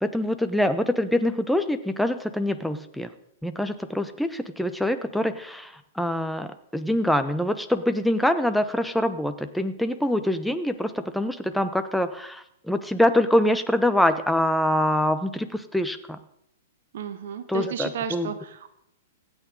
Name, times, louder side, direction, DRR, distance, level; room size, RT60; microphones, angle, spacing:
voice 1, 0.0-3.1 3.4-16.2 17.5-18.3, left 1 dB, ahead, 10 dB, 0.9 m, -25 dB
voice 2, 16.9-18.7, right 7 dB, 55° right, 10 dB, 1.1 m, -33 dB
25.5 x 9.0 x 3.8 m, 0.78 s
figure-of-eight pair, 105°, 0 cm